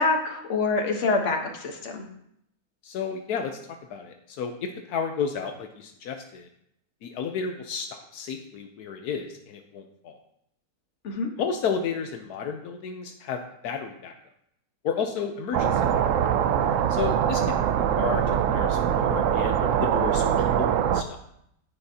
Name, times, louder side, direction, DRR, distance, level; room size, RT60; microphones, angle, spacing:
voice 1, 0.0-2.1 11.0-11.3, left 3 dB, 50° left, 3 dB, 1.4 m, -26 dB
voice 2, 2.8-3.6 3.9-6.5 7.0-10.1 11.4-14.1 14.8-15.8 16.9-17.7 18.0-20.3 20.6-21.0, left 6 dB, 80° left, 5 dB, 1.2 m, -32 dB
sound 1, 15.5-21.0, right 9 dB, 70° right, 0.8 m, -23 dB
10.0 x 8.8 x 2.8 m, 0.74 s
omnidirectional pair, 1.6 m